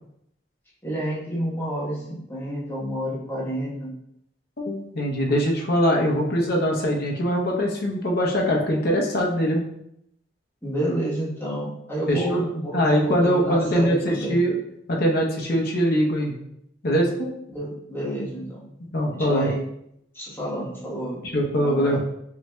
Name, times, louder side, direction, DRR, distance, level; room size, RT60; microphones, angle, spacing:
voice 1, 0.8-3.9 10.6-14.4 17.5-18.7 19.2-19.6 20.1-21.2 21.6-22.0, equal, 15° left, -6 dB, 1.1 m, -29 dB
voice 2, 4.6-9.7 12.1-12.4 12.7-14.6 14.9-16.3 16.8-17.3 18.9-19.5 21.2-22.0, equal, 55° left, 0 dB, 0.8 m, -22 dB
5.6 x 2.8 x 2.2 m, 0.76 s
head